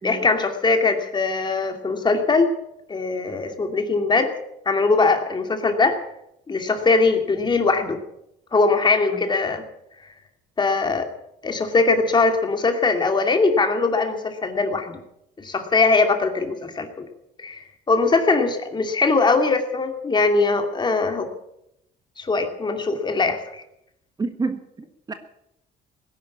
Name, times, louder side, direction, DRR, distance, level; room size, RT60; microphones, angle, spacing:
voice 1, 0.0-2.5 2.9-4.3 4.7-6.0 6.5-8.0 8.5-9.6 10.6-11.1 11.4-15.0 15.4-17.0 17.4-21.3 22.2-23.6, left 3 dB, 25° left, 6 dB, 2.6 m, -21 dB
voice 2, 24.2-25.1, right 3 dB, 25° right, 8 dB, 1.4 m, -29 dB
18.5 x 11.0 x 7.2 m, 0.81 s
cardioid pair, 110°, 17 cm